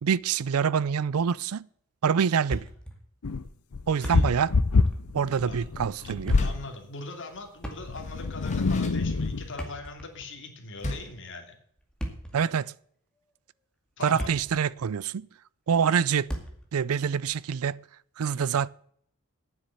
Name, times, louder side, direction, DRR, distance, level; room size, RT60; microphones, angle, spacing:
voice 1, 0.0-1.7 2.0-2.7 3.9-4.5 5.1-6.4 12.3-12.7 14.0-15.3 15.7-16.3 16.7-17.8 18.2-18.7, right 7 dB, 75° right, 0.4 m, -26 dB
Thump thud, 2.5-3.0 3.3-3.4 3.8-4.6 4.8-5.0 6.0-6.6 7.6-8.2 9.4-10.4 11.8-12.4 13.2-13.3 13.9-14.6 14.9-15.0 16.3-16.7, equal, 5° left, 2.1 m, -37 dB
sound 1, 3.2-6.6 7.8-9.5, left 3 dB, 85° left, 0.6 m, -26 dB
voice 2, 4.0-4.3 5.4-5.6 6.0-11.5 14.0-14.4, left 3 dB, 60° left, 2.6 m, -41 dB
Door, 6.2-6.8 7.9-9.6 10.8-11.3, left 1 dB, 35° left, 1.9 m, -39 dB
9.6 x 7.4 x 8.4 m
head